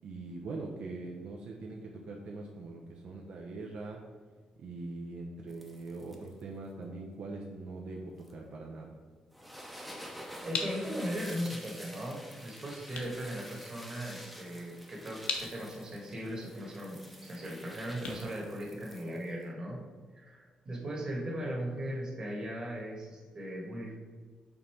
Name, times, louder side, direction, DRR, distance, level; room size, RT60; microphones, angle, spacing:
voice 1, 0.0-4.0 4.6-8.9, right 3 dB, 65° right, -1 dB, 0.6 m, -42 dB
sound 1, 5.5-6.4 8.2-8.3 9.3-19.4, equal, ahead, 0.7 m, -49 dB
voice 2, 10.4-19.8 20.1-24.0, equal, 30° right, -2 dB, 1.4 m, -38 dB
sound 2, 10.5-19.3, left 4 dB, 65° left, 0.9 m, -43 dB
5.3 x 4.0 x 4.4 m, 1.5 s
cardioid pair, 135°, 2 cm